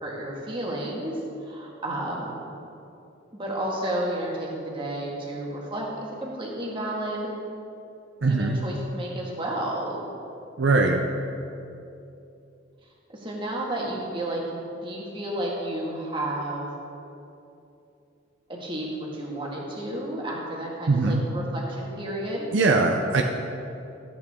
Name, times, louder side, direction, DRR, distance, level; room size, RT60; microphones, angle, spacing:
voice 1, 0.0-1.1 1.4-2.4 3.3-5.9 6.2-7.3 8.2-10.0 13.1-16.7 18.5-22.5, right 1 dB, 25° right, -3 dB, 1.7 m, -31 dB
voice 2, 8.2-8.6 10.6-11.0 20.9-21.2 22.5-23.2, right 3 dB, 65° right, 2 dB, 0.6 m, -21 dB
13.5 x 8.2 x 3.7 m, 2.7 s
head